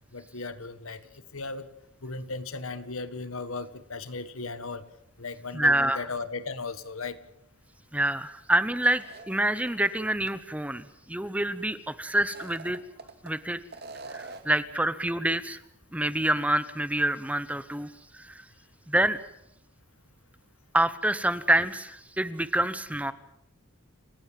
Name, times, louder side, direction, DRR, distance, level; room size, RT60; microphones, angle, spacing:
voice 1, 0.1-1.7 2.0-4.8 5.2-7.2, left 3 dB, 85° left, 13 dB, 1.8 m, -36 dB
voice 2, 5.5-6.1 7.9-12.8 13.2-13.6 14.1-15.6 15.9-18.4 18.9-19.2 20.7-23.1, right 1 dB, 5° right, 14 dB, 0.9 m, -27 dB
sound 1, 8.8-9.9 10.3-10.4 12.2-13.3 13.7-14.6, right 3 dB, 50° right, 2.4 m, -44 dB
29.5 x 16.5 x 7.5 m, 0.77 s
head